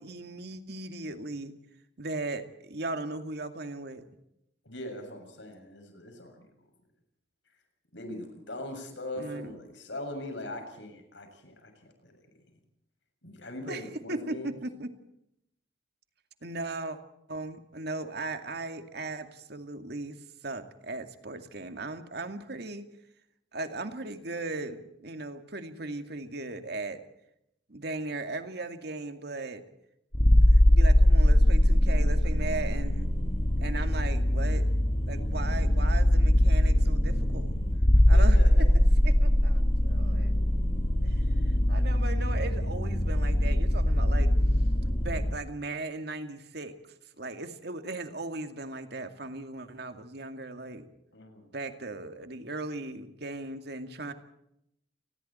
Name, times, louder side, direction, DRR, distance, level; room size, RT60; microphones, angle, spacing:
voice 1, 0.0-1.5 2.0-4.0 9.2-9.5 13.7-13.8 14.1-14.9 16.4-17.0 17.3-22.9 23.5-27.0 27.7-29.6 30.5-33.1 33.6-34.7 35.1-37.5 38.1-38.4 39.0-40.4 41.0-44.3 45.0-46.7 47.2-50.9 51.5-54.1, right 2 dB, 60° right, 7 dB, 2.4 m, -37 dB
voice 2, 4.6-6.4 7.9-12.3 13.2-14.5 38.1-38.7 51.1-51.5, left 1 dB, 75° left, 5 dB, 7.0 m, -41 dB
sound 1, 30.1-45.3, left 1 dB, 30° left, 1.4 m, -22 dB
29.5 x 21.0 x 4.4 m, 0.77 s
head